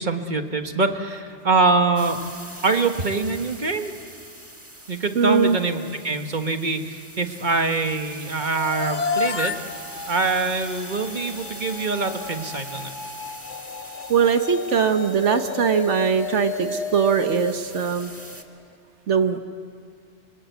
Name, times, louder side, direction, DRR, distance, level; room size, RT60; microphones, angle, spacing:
voice 1, 0.0-2.2 2.6-3.9 4.9-9.5 10.1-12.9, right 3 dB, 40° right, 6 dB, 1.5 m, -24 dB
sound 1, 2.0-18.4, right 1 dB, 10° right, 1.5 m, -42 dB
voice 2, 5.1-5.6 14.1-18.1 19.1-19.4, right 6 dB, 80° right, 8 dB, 1.4 m, -21 dB
sound 2, 8.4-18.6, left 5 dB, 85° left, 1.6 m, -32 dB
27.0 x 24.5 x 8.2 m, 2.2 s
omnidirectional pair, 1.2 m